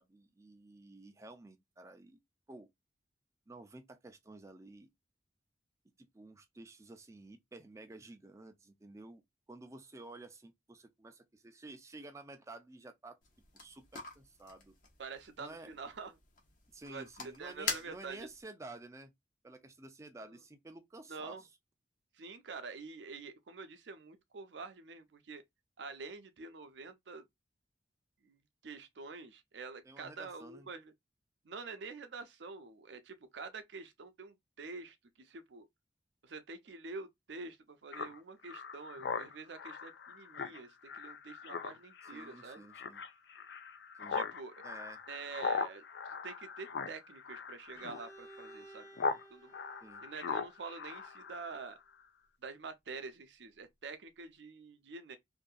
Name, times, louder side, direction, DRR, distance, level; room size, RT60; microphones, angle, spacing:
voice 1, 0.0-2.2 2.5-2.7 3.5-4.9 6.0-9.2 9.5-13.2 13.5-14.8 15.4-15.7 16.7-19.1 19.4-21.4 29.8-30.7 42.1-43.0 44.0-44.2 44.6-45.0 49.8-50.0, right 2 dB, 15° right, 0.4 m, -52 dB
sound 1, 13.2-18.4, left 4 dB, 50° left, 0.8 m, -45 dB
voice 2, 15.0-16.1 16.9-18.3 20.2-20.4 21.1-21.4 22.2-25.4 25.8-27.2 28.2-28.4 28.6-30.9 31.4-35.7 36.2-42.7 44.1-44.5 45.1-48.9 49.3-49.5 50.0-51.8 52.4-55.2, right 4 dB, 85° right, 0.5 m, -47 dB
Speech synthesizer, 37.9-49.2 49.5-51.7, left 5 dB, 75° left, 0.4 m, -40 dB
Bowed string instrument, 47.7-51.6, right 2 dB, 15° left, 0.7 m, -57 dB
2.7 x 2.5 x 2.3 m
head